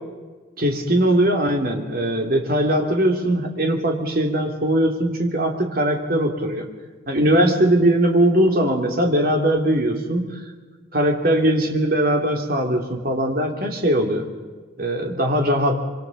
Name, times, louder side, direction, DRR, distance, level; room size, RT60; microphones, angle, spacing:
voice 1, 0.6-6.7 7.1-10.4 10.9-14.2 14.8-15.8, right 1 dB, 50° right, 2 dB, 3.1 m, -20 dB
25.5 x 24.5 x 5.4 m, 1.3 s
head